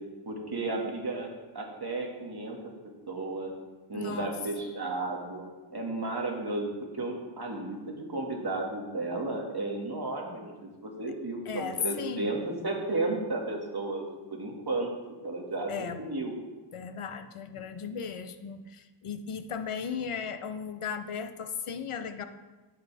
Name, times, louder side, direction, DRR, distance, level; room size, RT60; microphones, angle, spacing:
voice 1, 0.3-2.6 3.1-3.5 3.9-6.7 6.9-14.0 14.3-14.9 15.2-16.3, right 2 dB, 50° right, 0 dB, 2.1 m, -33 dB
voice 2, 3.9-4.3 11.5-12.4 15.7-16.0 16.7-22.2, left 7 dB, 85° left, 8 dB, 0.8 m, -36 dB
11.0 x 9.6 x 3.5 m, 1.2 s
wide cardioid pair, 80°, 49 cm